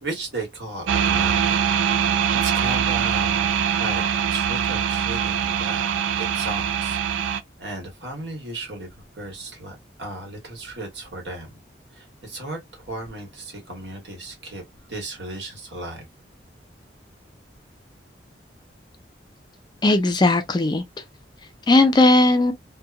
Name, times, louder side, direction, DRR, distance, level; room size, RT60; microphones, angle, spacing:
voice 1, 0.0-1.6 2.4-4.0 4.3-5.8 6.2-8.9 9.1-11.6 11.9-14.6 14.9-16.0, right 2 dB, 70° right, 1.4 m, -35 dB
sound 1, 0.9-7.4, right 8 dB, 90° right, 0.4 m, -23 dB
voice 2, 19.8-20.8 21.7-22.5, left 2 dB, 25° left, 0.4 m, -17 dB
2.8 x 2.2 x 2.3 m
head